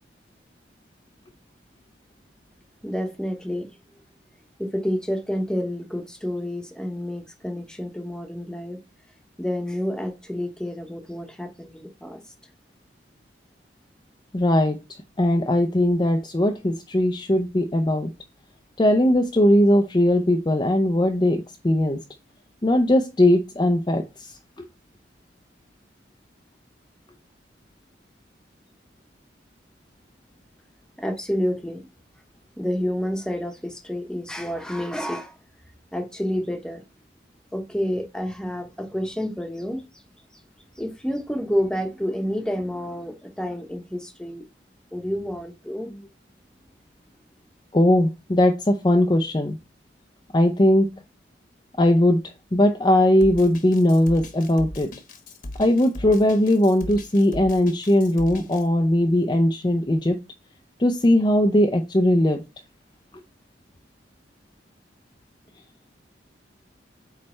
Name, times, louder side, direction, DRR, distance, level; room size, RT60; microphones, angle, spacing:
voice 1, 2.8-3.7 4.6-8.8 9.4-12.2 31.0-31.9 32.6-35.3 35.9-36.8 37.5-40.0 40.3-40.4 40.7-44.4 44.9-45.9, equal, 5° left, 1.0 m, -29 dB
voice 2, 14.3-14.8 15.2-18.1 18.8-22.0 22.6-24.3 47.7-49.6 50.3-50.9 51.8-52.2 52.5-54.9 55.6-60.2 60.8-62.4, left 1 dB, 25° left, 0.5 m, -19 dB
Drum kit, 53.2-58.6, left 1 dB, 50° left, 1.2 m, -38 dB
8.5 x 3.3 x 4.3 m
head